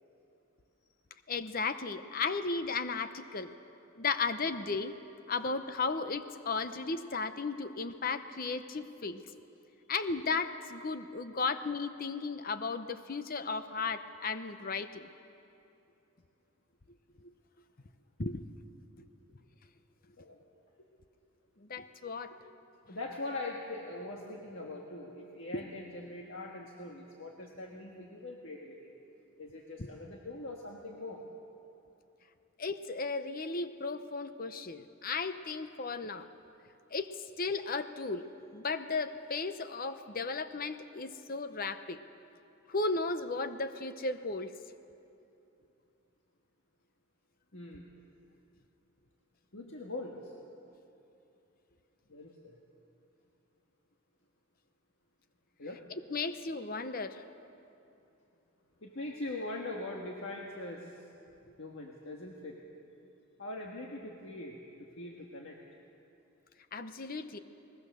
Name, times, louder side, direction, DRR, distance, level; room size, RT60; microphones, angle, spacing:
voice 1, 1.3-3.5 4.0-4.9 5.3-9.2 9.9-15.1 18.2-18.4 19.0-19.1 21.6-22.3 25.5-25.6 29.8-29.9 32.6-36.3 36.9-38.2 38.5-42.0 42.7-44.5 56.1-57.2 66.7-67.4, left 4 dB, 40° left, 11 dB, 0.8 m, -35 dB
voice 2, 20.2-20.5 22.9-28.9 29.4-31.2 47.5-47.9 49.5-50.3 52.1-52.6 55.6-55.8 58.8-61.1 61.6-62.6 63.4-65.6, left 2 dB, 60° left, -1 dB, 1.6 m, -42 dB
21.5 x 20.0 x 6.8 m, 2.8 s
head